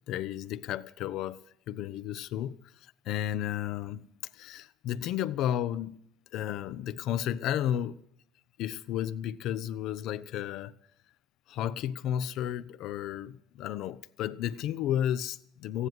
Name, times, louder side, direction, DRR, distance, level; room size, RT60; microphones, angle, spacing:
voice 1, 0.1-2.6 3.0-6.0 6.3-8.0 8.6-10.8 11.5-15.9, left 11 dB, 60° left, 0.6 m, -33 dB
14.5 x 9.9 x 9.2 m
hypercardioid pair, 75°, 0 cm